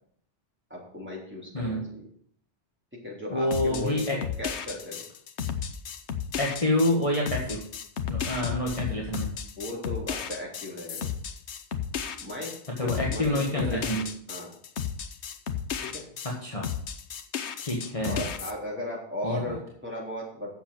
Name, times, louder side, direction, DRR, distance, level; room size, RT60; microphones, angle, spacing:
voice 1, 0.7-2.1 2.9-5.0 9.6-11.1 12.2-14.5 15.8-16.0 18.0-20.5, left 1 dB, 10° right, -4 dB, 3.4 m, -37 dB
voice 2, 3.3-4.2 6.4-7.6 8.1-9.3 12.8-14.0 16.2-16.7 17.6-18.3 19.2-19.5, left 1 dB, 30° left, -3 dB, 1.6 m, -27 dB
sound 1, 3.5-16.3 16.6-18.5, left 7 dB, 70° left, 1.1 m, -34 dB
7.5 x 7.0 x 7.5 m, 0.64 s
omnidirectional pair, 1.2 m